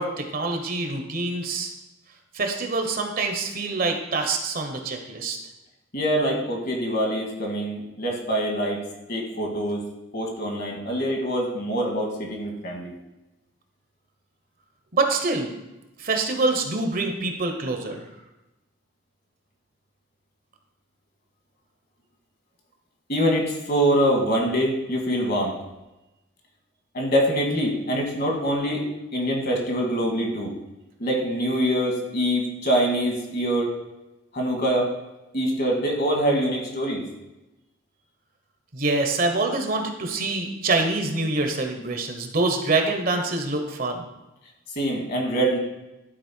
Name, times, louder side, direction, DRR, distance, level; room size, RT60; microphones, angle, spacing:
voice 1, 0.0-1.7 2.3-5.4 14.9-15.5 16.0-18.0 38.7-44.1, right 3 dB, 50° right, 4 dB, 1.1 m, -25 dB
voice 2, 5.9-8.8 9.1-9.8 10.1-12.9 23.1-25.5 26.9-28.8 29.1-30.5 31.0-33.7 34.3-34.9 35.3-37.0 44.8-45.6, equal, 55° left, 0 dB, 2.1 m, -24 dB
11.5 x 4.4 x 4.5 m, 0.98 s
head